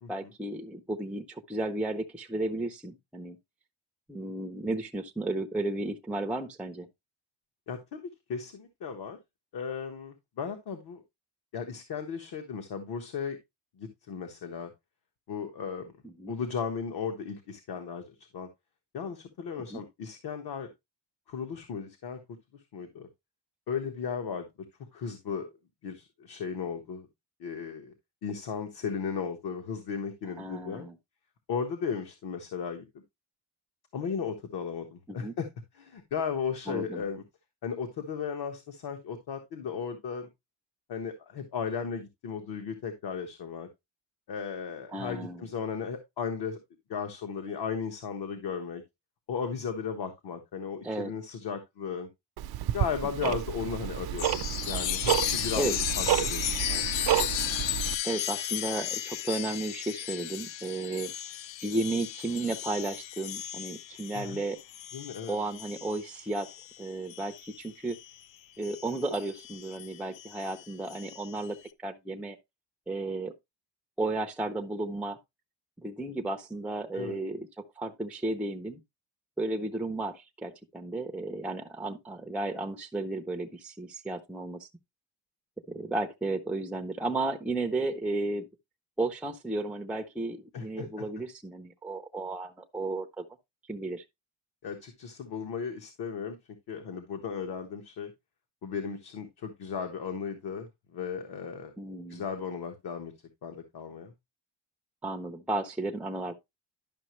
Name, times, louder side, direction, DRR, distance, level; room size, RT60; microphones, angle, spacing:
voice 1, 0.1-3.4 4.1-6.9 16.0-16.3 19.7-19.8 30.4-31.0 35.1-35.4 36.7-37.0 44.9-45.4 50.8-51.1 53.2-53.4 55.6-55.7 58.0-61.1 61.6-64.6 65.3-66.5 66.8-68.0 68.6-72.4 72.9-73.3 74.0-75.2 75.8-78.8 79.4-84.7 85.7-88.5 89.0-93.2 93.7-94.0 101.8-102.2 105.0-106.3, right 2 dB, 5° right, 0.5 m, -33 dB
voice 2, 7.7-8.0 8.3-9.2 9.5-11.0 11.5-13.4 13.8-14.7 15.3-15.9 16.3-18.5 18.9-20.7 21.3-22.2 22.5-23.1 23.7-24.5 24.9-25.5 25.8-27.1 27.4-27.9 28.2-30.9 31.5-32.9 33.9-35.5 35.7-37.2 37.6-40.3 40.9-43.7 44.3-46.6 46.9-48.8 49.3-52.1 52.7-56.8 64.1-64.4 64.9-65.4 76.9-77.2 90.5-91.1 94.6-96.4 96.7-98.1 98.6-101.7 102.1-103.1 103.4-104.1, left 6 dB, 60° left, 1.3 m, -35 dB
Tick-tock, 52.4-57.9, right 12 dB, 55° right, 0.6 m, -30 dB
Chime, 54.2-68.2 68.6-71.5, left 12 dB, 90° left, 0.7 m, -35 dB
11.0 x 5.9 x 3.0 m
cardioid pair, 175°, 44 cm